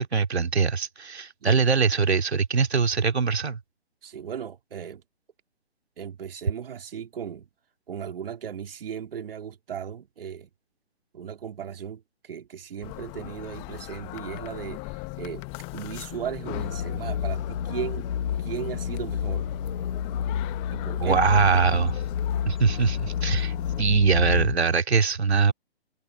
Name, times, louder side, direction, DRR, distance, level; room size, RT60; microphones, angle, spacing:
voice 1, 0.0-3.6 21.0-22.0 22.5-25.5, right 5 dB, 80° right, 2.5 m, -22 dB
voice 2, 4.0-5.0 6.0-7.5 7.9-10.5 11.1-14.8 15.2-15.4 15.7-18.1 18.4-19.5 20.7-21.2, right 8 dB, 60° right, 2.8 m, -36 dB
sound 1, 12.8-23.8, left 24 dB, 20° left, 0.8 m, -39 dB
sound 2, 16.5-24.5, left 8 dB, 60° left, 1.4 m, -29 dB
hypercardioid pair, 140°, 32 cm